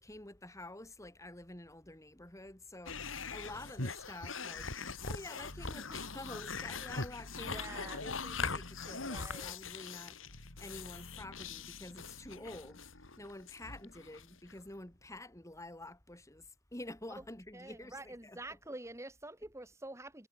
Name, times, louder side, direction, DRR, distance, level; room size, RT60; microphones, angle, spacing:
voice 1, 0.0-4.7 5.0-12.8 13.2-18.6, left 1 dB, 15° left, 2.7 m, -49 dB
sound 1, 2.9-14.6, left 4 dB, 70° left, 3.5 m, -42 dB
voice 2, 7.4-8.0 8.9-9.5 17.5-20.3, right 2 dB, 15° right, 2.0 m, -47 dB
head